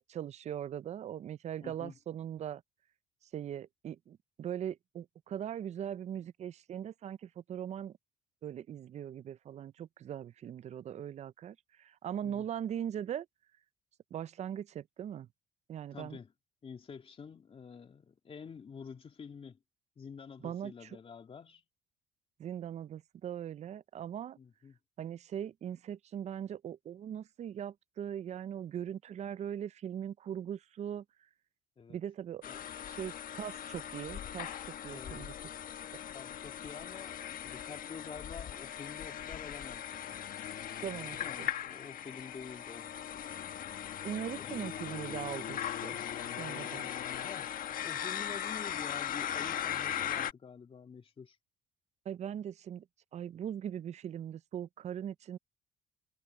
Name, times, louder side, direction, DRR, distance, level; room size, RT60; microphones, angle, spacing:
voice 1, 0.0-2.6 3.3-7.9 8.4-13.3 14.1-15.3 15.7-16.2 20.4-21.0 22.4-24.4 25.0-31.0 31.9-32.4 32.8-34.5 34.8-35.3 40.8-41.5 44.0-46.0 46.4-46.9 52.1-52.8 53.1-55.4, right 9 dB, 40° right, 0.5 m, -40 dB
voice 2, 1.6-2.0 12.2-12.5 15.9-16.3 16.6-19.6 20.0-21.6 24.4-24.8 31.8-32.0 32.4-32.6 34.9-35.3 36.1-40.0 41.1-43.0 44.4-44.7 47.2-51.4, left 6 dB, 35° left, 2.7 m, -48 dB
sound 1, 32.4-50.3, left 10 dB, 55° left, 1.4 m, -39 dB
cardioid pair, 110°, 17 cm